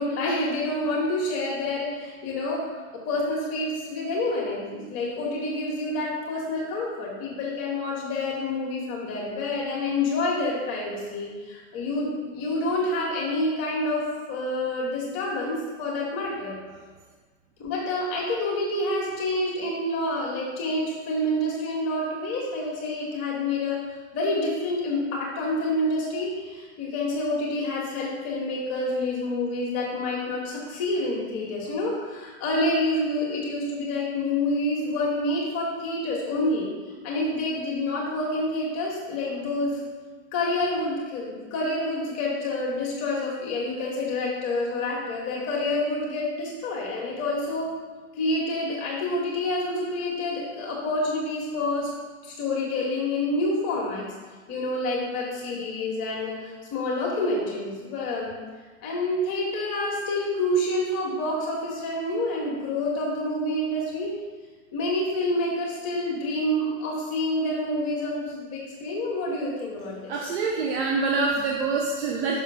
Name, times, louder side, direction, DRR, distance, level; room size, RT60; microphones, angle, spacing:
voice 1, 0.0-16.6 17.6-23.8 24.1-36.7 37.0-39.8 40.3-47.7 48.2-51.9 52.2-54.1 54.5-58.4 58.8-64.1 64.7-70.1, left 1 dB, 40° left, -4 dB, 1.8 m, -28 dB
voice 2, 70.1-72.4, right 4 dB, 50° right, -1 dB, 0.9 m, -25 dB
6.4 x 3.7 x 5.6 m, 1.4 s
hypercardioid pair, 120°, 40 cm